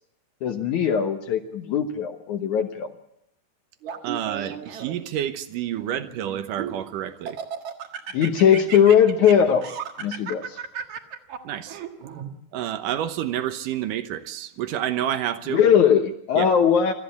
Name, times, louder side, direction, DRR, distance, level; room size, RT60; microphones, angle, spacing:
voice 1, 0.4-2.9 8.1-9.7 10.0-10.6 15.5-16.9, left 8 dB, 75° left, 1.8 m, -19 dB
Laughter, 3.8-5.1 5.7-6.8 7.3-12.3, right 7 dB, 55° right, 2.3 m, -35 dB
voice 2, 4.0-7.4 11.4-11.8 12.5-15.6 16.4-16.5, right 11 dB, 75° right, 2.0 m, -29 dB
26.5 x 14.0 x 8.3 m
omnidirectional pair, 4.9 m